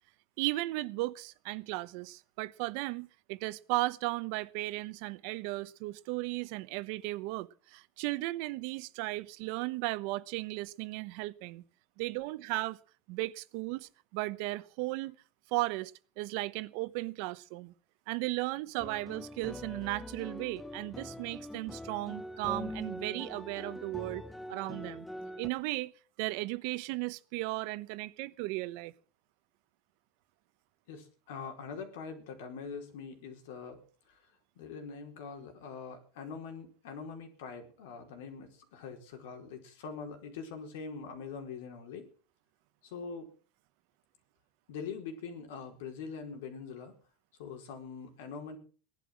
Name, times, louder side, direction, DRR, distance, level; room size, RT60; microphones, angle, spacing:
voice 1, 0.4-11.6 12.0-12.8 13.1-15.1 15.5-17.7 18.1-24.2 24.5-25.1 25.4-25.9 26.2-28.9, right 20 dB, 65° right, 0.9 m, -36 dB
sound 1, 18.8-25.5, left 1 dB, 5° left, 0.7 m, -43 dB
voice 2, 30.9-33.8 34.1-34.2 34.6-42.0 42.8-43.3 44.7-47.0 47.4-48.6, left 5 dB, 85° left, 4.4 m, -43 dB
17.5 x 11.5 x 6.4 m
supercardioid pair, 145°, 0 cm